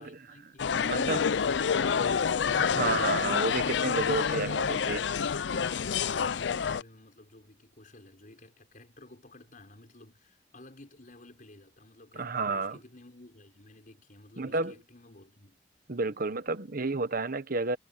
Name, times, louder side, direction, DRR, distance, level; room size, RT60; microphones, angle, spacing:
voice 1, 0.0-2.4 5.6-15.6, left 2 dB, 50° left, 5.4 m, -54 dB
sound 1, 0.6-6.8, left 6 dB, 75° left, 0.5 m, -28 dB
voice 2, 0.8-1.3 2.6-5.1 12.2-12.8 14.4-14.7 15.9-17.8, right 3 dB, 55° right, 1.2 m, -31 dB
head